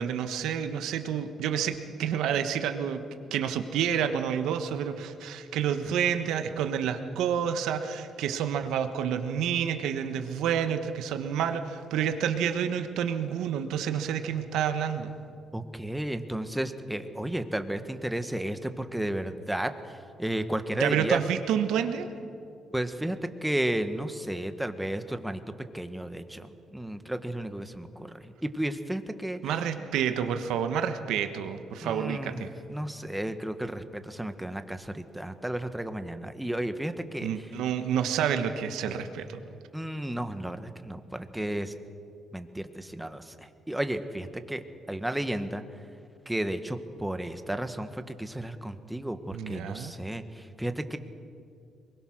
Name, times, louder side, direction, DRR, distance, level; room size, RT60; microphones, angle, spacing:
voice 1, 0.0-3.0 3.3-15.1 20.8-22.1 29.4-32.5 37.2-39.4 49.3-49.9, right 8 dB, 85° right, 8 dB, 1.3 m, -29 dB
voice 2, 15.5-21.2 22.7-25.4 25.7-29.6 31.8-37.5 39.7-41.8 42.3-45.6 46.2-51.0, right 1 dB, 5° right, 8 dB, 1.4 m, -33 dB
23.0 x 21.0 x 6.4 m, 2.5 s
cardioid pair, 90°, 0 cm